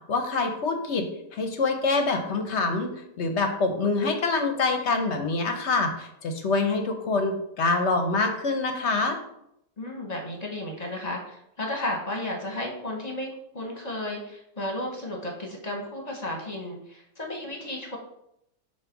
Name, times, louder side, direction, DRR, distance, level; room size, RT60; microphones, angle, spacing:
voice 1, 0.1-1.1 1.3-9.2, left 3 dB, 50° left, 5 dB, 0.9 m, -25 dB
voice 2, 9.8-18.0, left 1 dB, 30° left, 0 dB, 0.9 m, -33 dB
7.3 x 2.8 x 5.9 m, 0.78 s
omnidirectional pair, 1.9 m